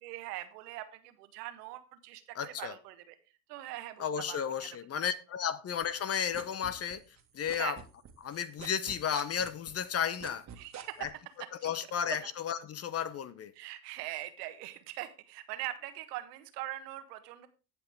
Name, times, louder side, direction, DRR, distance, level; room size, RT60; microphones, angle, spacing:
voice 1, 0.0-3.1 3.5-4.7 7.5-7.8 10.6-11.1 12.2-12.3 13.5-17.5, right 15 dB, 70° right, 1.5 m, -42 dB
voice 2, 2.3-2.7 4.0-7.0 7.3-7.8 8.2-10.4 11.0-11.1 11.6-13.5, left 8 dB, 30° left, 0.9 m, -33 dB
sound 1, 5.8-7.2 7.5-11.1, right 9 dB, 35° right, 1.9 m, -45 dB
17.0 x 5.8 x 3.6 m
hypercardioid pair, 85°, 50 cm